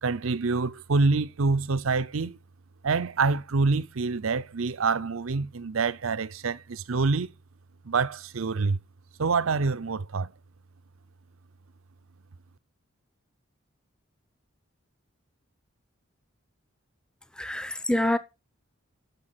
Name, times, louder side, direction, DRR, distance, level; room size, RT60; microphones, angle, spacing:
voice 1, 0.0-2.4 2.8-7.3 7.8-8.8 9.2-10.3, right 4 dB, 80° right, 0.6 m, -26 dB
voice 2, 17.3-18.2, left 1 dB, 5° left, 0.7 m, -26 dB
10.5 x 6.9 x 5.9 m
head